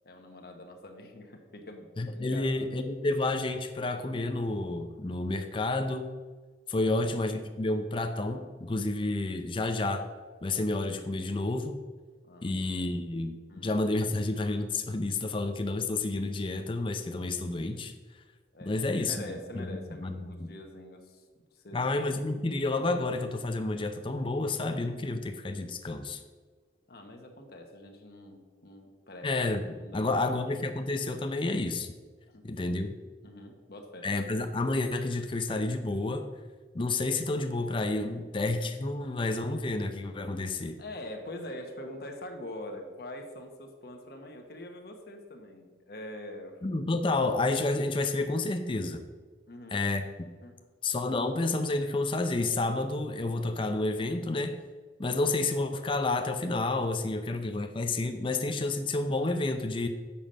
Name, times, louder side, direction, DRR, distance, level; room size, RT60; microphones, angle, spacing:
voice 1, 0.0-1.9 2.1-2.8 6.8-7.1 12.2-13.0 13.5-13.8 18.5-21.2 21.5-22.0 26.9-29.4 29.8-30.4 32.3-32.5 33.2-34.1 40.8-46.6 49.5-49.9 50.4-50.6, left 1 dB, 60° left, 4 dB, 1.0 m, -44 dB
voice 2, 2.0-6.1 6.7-10.1 10.4-11.8 12.4-13.4 13.6-17.9 18.6-20.5 21.7-26.2 29.2-31.9 32.4-33.0 34.0-36.3 36.7-40.8 46.6-49.0 49.7-50.1 50.8-54.6 55.0-59.9, left 2 dB, 30° left, 7 dB, 0.6 m, -30 dB
7.1 x 5.7 x 6.4 m, 1.4 s
head